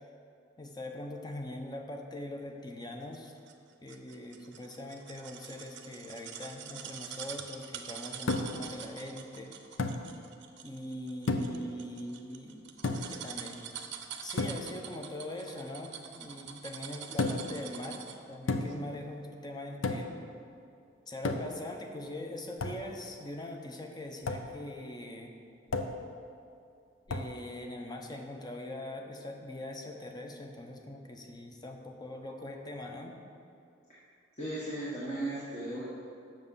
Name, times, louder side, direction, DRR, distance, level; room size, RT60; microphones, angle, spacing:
voice 1, 0.6-3.3 3.8-9.9 10.6-13.7 14.2-20.1 21.1-25.3 27.1-33.2, left 1 dB, 20° left, 3 dB, 0.7 m, -42 dB
sound 1, 3.1-18.3 18.7-18.8, right 8 dB, 65° right, 0.6 m, -45 dB
sound 2, 8.3-8.7 9.8-10.1 11.3-11.7 12.8-13.2 14.4-14.7 17.2-17.6 18.5-18.9 19.8-20.2 21.3-21.7 22.6-22.9 24.3-24.5 25.7-26.1 27.1-27.4, left 3 dB, 85° left, 0.6 m, -32 dB
voice 2, 34.4-35.8, right 1 dB, 35° left, -9 dB, 1.5 m, -36 dB
7.5 x 6.6 x 5.5 m, 2.5 s
head